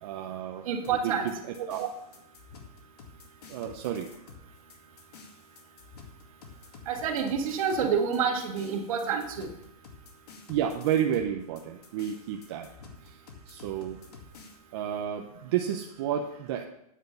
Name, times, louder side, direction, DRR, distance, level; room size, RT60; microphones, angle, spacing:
voice 1, 0.0-1.9 3.5-4.1 7.8-8.0 10.5-12.7 13.0-13.2 13.5-14.0 14.7-16.7, right 9 dB, 45° right, 3 dB, 0.8 m, -31 dB
voice 2, 0.6-1.3 6.9-9.5, right 6 dB, 60° right, 4 dB, 1.9 m, -28 dB
sound 1, 0.8-14.6, left 4 dB, 80° left, 2.2 m, -50 dB
9.3 x 6.4 x 6.7 m, 0.77 s
supercardioid pair, 165°, 20 cm